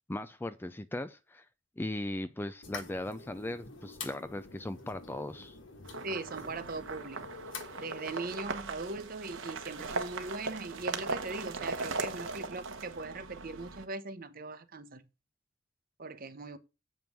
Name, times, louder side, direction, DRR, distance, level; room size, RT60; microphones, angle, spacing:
voice 1, 0.1-1.5 1.8-5.6, left 1 dB, 10° left, 0.4 m, -38 dB
sound 1, 2.6-8.2, left 4 dB, 70° left, 1.5 m, -47 dB
sound 2, 5.8-13.8, right 3 dB, 75° right, 1.1 m, -39 dB
voice 2, 6.0-7.2 7.8-15.0 16.0-16.6, right 3 dB, 45° right, 0.9 m, -40 dB
7.7 x 5.3 x 5.9 m
head